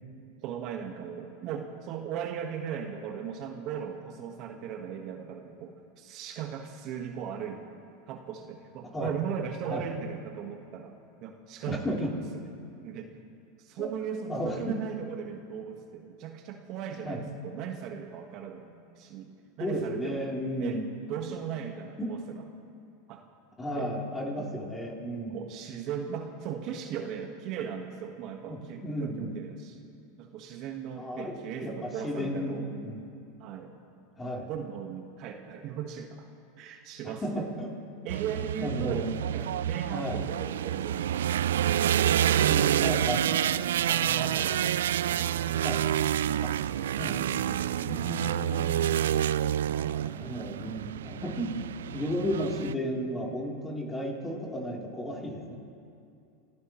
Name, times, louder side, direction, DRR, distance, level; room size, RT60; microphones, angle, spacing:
voice 1, 0.4-7.8 8.1-10.9 11.2-12.4 12.8-13.1 13.6-19.3 19.6-20.3 20.6-20.8 21.1-22.4 23.1-23.2 23.7-23.9 24.6-24.7 25.3-29.8 30.2-32.7 33.4-33.8 34.5-37.5 38.0-41.4 43.9-45.4 48.1-48.5 49.6-50.1 50.6-50.7, right 8 dB, 50° right, 3 dB, 1.5 m, -38 dB
voice 2, 11.7-12.1 13.8-13.9 14.3-14.7 17.0-17.2 19.6-20.9 22.0-22.1 23.6-25.4 28.5-29.3 30.9-33.1 34.2-34.5 37.2-37.7 38.6-39.2 39.9-40.2 42.4-43.6 44.2-44.3 45.6-45.8 46.4-46.5 47.0-48.8 50.0-51.5 51.9-55.6, equal, 15° left, -2 dB, 3.5 m, -34 dB
sound 1, 38.1-52.7, right 11 dB, 85° right, 0.3 m, -28 dB
30.0 x 14.5 x 3.2 m, 2.6 s
hypercardioid pair, 105°, 0 cm